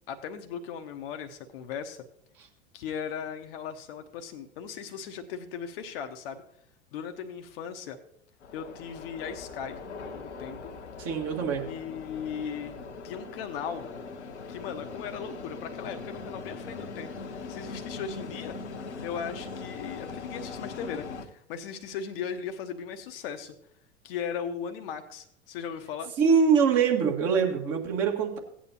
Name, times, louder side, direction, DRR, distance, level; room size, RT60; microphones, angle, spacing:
voice 1, 0.1-2.0 2.7-6.4 6.9-8.0 8.5-9.8 10.1-10.7 11.7-12.8 13.0-13.9 14.5-18.6 19.0-23.5 24.0-26.1, left 7 dB, 55° left, 6 dB, 1.0 m, -37 dB
sound 1, 8.4-21.3, left 4 dB, 75° left, 1.2 m, -41 dB
voice 2, 11.0-11.7 26.2-28.4, right 6 dB, 45° right, 2 dB, 1.9 m, -23 dB
16.5 x 8.7 x 2.9 m, 0.73 s
figure-of-eight pair, 85°, 34 cm